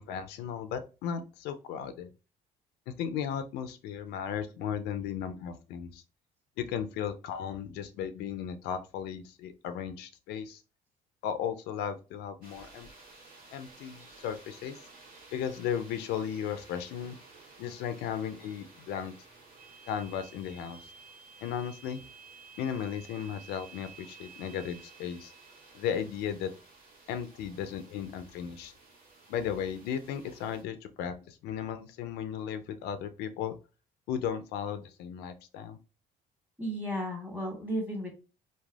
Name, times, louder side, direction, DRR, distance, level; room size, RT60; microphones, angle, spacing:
voice 1, 0.0-2.1 2.9-6.0 6.6-10.6 11.2-12.9 13.5-14.8 15.3-17.2 17.6-19.1 19.9-20.9 21.4-22.0 22.6-25.3 25.7-26.5 27.1-28.7 29.3-33.6 34.1-35.8, left 8 dB, 85° left, 10 dB, 0.4 m, -35 dB
sound 1, 12.4-30.6, right 3 dB, 60° right, 1.0 m, -56 dB
sound 2, 19.6-25.9, right 6 dB, 80° right, 0.6 m, -53 dB
voice 2, 36.6-38.2, equal, 10° right, 0 dB, 1.2 m, -34 dB
3.2 x 2.1 x 2.3 m, 0.32 s
cardioid pair, 110°, 17 cm